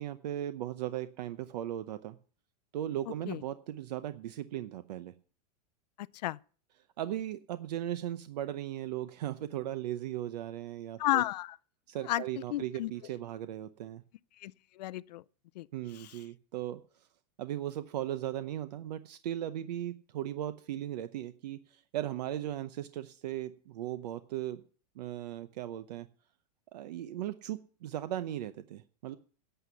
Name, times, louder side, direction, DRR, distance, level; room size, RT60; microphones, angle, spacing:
voice 1, 0.0-2.2 2.7-5.1 7.0-11.2 11.9-14.0 15.7-17.1 17.4-24.6 25.0-26.1 26.7-29.2, right 12 dB, 75° right, 0.8 m, -37 dB
voice 2, 6.0-6.4 11.0-11.6 12.0-12.2 12.5-12.9 14.4-15.2 15.6-15.7 15.9-16.2, left 15 dB, 75° left, 0.5 m, -33 dB
11.0 x 8.0 x 6.9 m
supercardioid pair, 160°, 21 cm